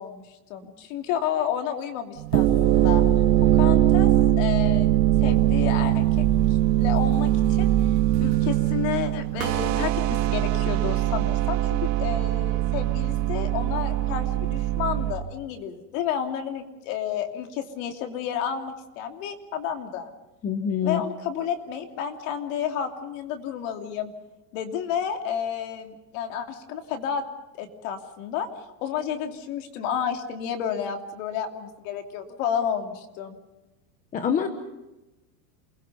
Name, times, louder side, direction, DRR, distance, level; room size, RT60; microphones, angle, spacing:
voice 1, 0.0-3.0 3.5-6.2 6.8-7.7 8.2-20.1 20.8-24.1 24.5-27.2 27.5-28.5 28.8-33.4, left 8 dB, 50° left, 5 dB, 3.0 m, -31 dB
sound 1, 2.2-15.1, right 13 dB, 75° right, 2.3 m, -21 dB
voice 2, 20.4-21.0 34.1-34.5, left 7 dB, 15° left, 7 dB, 0.9 m, -25 dB
28.5 x 21.0 x 5.6 m, 1.0 s
supercardioid pair, 175°, 49 cm